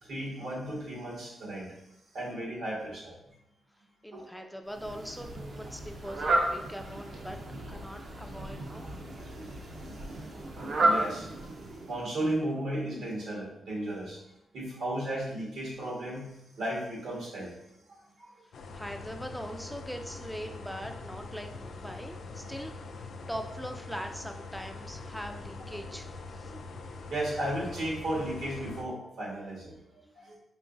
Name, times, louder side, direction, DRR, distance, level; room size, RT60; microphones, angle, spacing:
voice 1, 0.0-1.7 2.1-3.1 4.1-4.2 9.3-9.4 9.9-10.0 10.3-10.4 10.8-11.5 11.9-14.2 14.5-17.5 18.2-18.3 26.5-26.6 27.1-29.8 30.1-30.4, right 1 dB, 85° right, -4 dB, 1.5 m, -34 dB
voice 2, 4.0-7.4 7.7-8.9 18.7-26.5, equal, ahead, 4 dB, 0.3 m, -41 dB
Fowl, 4.7-12.1, right 2 dB, 65° right, 0.6 m, -33 dB
sound 1, 18.5-28.8, left 3 dB, 75° left, 0.4 m, -43 dB
4.8 x 2.9 x 2.5 m, 0.85 s
cardioid pair, 100°, 0 cm